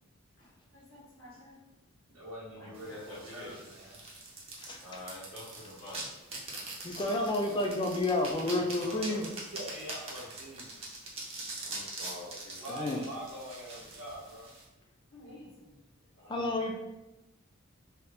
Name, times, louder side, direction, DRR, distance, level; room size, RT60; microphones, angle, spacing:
voice 1, 0.4-1.6 2.6-3.5 4.8-6.1 6.9-7.2 8.5-9.2 11.6-13.0 15.1-15.8 16.2-16.7, left 1 dB, 75° left, -7 dB, 1.2 m, -48 dB
voice 2, 2.1-4.0 9.1-10.8 12.5-14.5, right 1 dB, 70° right, -8 dB, 0.7 m, -44 dB
sound 1, 2.7-14.6, right 2 dB, 30° right, 0.6 m, -43 dB
voice 3, 6.8-9.2 12.7-13.0 16.3-16.7, left 2 dB, 20° left, 2 dB, 0.4 m, -30 dB
2.7 x 2.4 x 3.3 m, 0.96 s
head